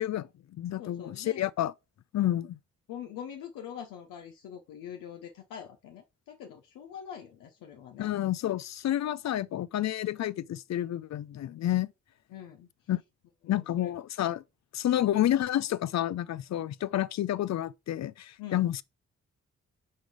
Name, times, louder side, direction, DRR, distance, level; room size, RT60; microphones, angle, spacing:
voice 1, 0.0-1.7 2.1-2.6 8.0-11.9 12.9-13.0 13.5-14.4 14.7-18.8, left 12 dB, 55° left, 0.5 m, -29 dB
voice 2, 0.8-1.4 2.1-2.4 2.9-8.1 12.3-12.7 13.4-13.9 18.4-18.7, left 9 dB, 80° left, 0.9 m, -44 dB
6.4 x 3.8 x 4.8 m
hypercardioid pair, 45°, 32 cm